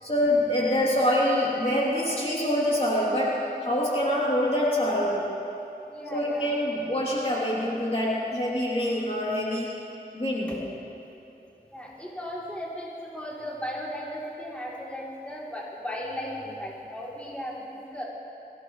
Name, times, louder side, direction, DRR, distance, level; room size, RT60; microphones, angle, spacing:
voice 1, 0.0-5.3 6.1-9.8 10.1-10.7, left 1 dB, 35° left, -6 dB, 3.1 m, -25 dB
voice 2, 5.9-6.5 11.7-18.0, equal, 5° left, -6 dB, 3.3 m, -36 dB
22.5 x 16.5 x 3.2 m, 2.7 s
wide cardioid pair, 45°, 17 cm